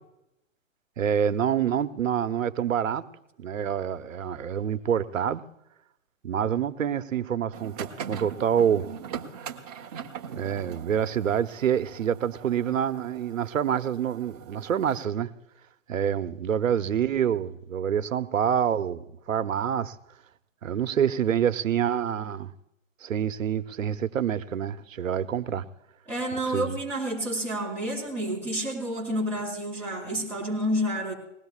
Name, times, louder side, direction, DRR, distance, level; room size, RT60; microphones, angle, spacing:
voice 1, 1.0-3.1 3.4-5.4 6.2-8.9 10.3-15.3 15.9-19.9 20.6-22.5 23.0-25.6 26.5-26.8, right 8 dB, 85° right, 1.0 m, -27 dB
sound 1, 7.5-15.0, right 7 dB, 30° right, 1.1 m, -41 dB
voice 2, 26.1-31.1, equal, 5° left, 4.5 m, -29 dB
20.5 x 18.0 x 2.4 m
hypercardioid pair, 170°, 39 cm